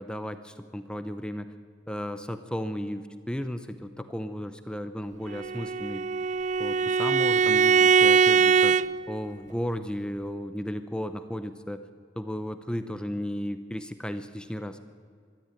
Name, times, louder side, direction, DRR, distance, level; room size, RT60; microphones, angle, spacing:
voice 1, 0.0-1.5 1.9-6.1 6.6-8.8 9.1-11.8 12.2-14.8, equal, 5° left, 9 dB, 0.8 m, -34 dB
Bowed string instrument, 5.3-8.9, right 6 dB, 40° right, 0.5 m, -21 dB
23.0 x 13.5 x 9.2 m, 2.1 s
head